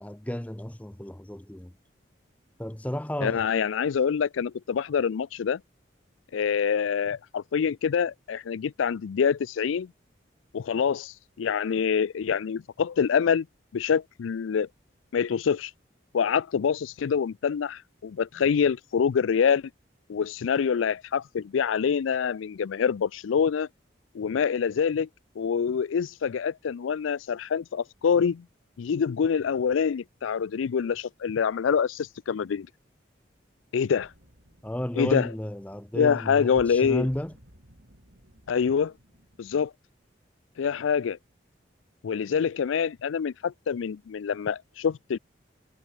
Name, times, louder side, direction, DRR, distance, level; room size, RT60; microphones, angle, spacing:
voice 1, 0.0-1.7 2.6-3.4 34.6-37.3, left 1 dB, 5° left, 0.6 m, -32 dB
voice 2, 3.2-5.6 6.3-9.9 10.5-13.5 13.7-14.7 15.1-15.7 16.1-19.6 20.1-23.7 24.1-25.1 25.4-28.4 28.8-32.7 33.7-34.1 35.0-35.3 35.9-37.1 38.5-38.9 39.4-39.7 40.6-41.2 42.0-45.2, left 6 dB, 85° left, 0.4 m, -26 dB
High Tension Two Beats Sequence Heavy, 34.0-39.7, equal, 60° right, 6.6 m, -55 dB
head